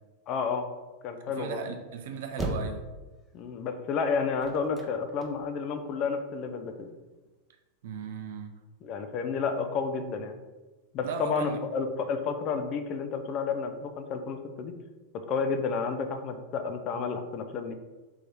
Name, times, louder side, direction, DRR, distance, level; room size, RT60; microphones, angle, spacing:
voice 1, 0.3-0.7 1.0-1.6 3.3-6.9 8.8-10.3 10.9-14.7 15.1-17.7, left 5 dB, 35° left, 7 dB, 0.5 m, -31 dB
voice 2, 1.4-2.9 7.8-8.5 11.0-11.6, right 5 dB, 55° right, 6 dB, 0.5 m, -36 dB
sound 1, 1.8-5.9 6.4-7.4, right 1 dB, 10° right, 0.7 m, -37 dB
3.7 x 3.0 x 4.5 m, 1.2 s
figure-of-eight pair, 90°, 0 cm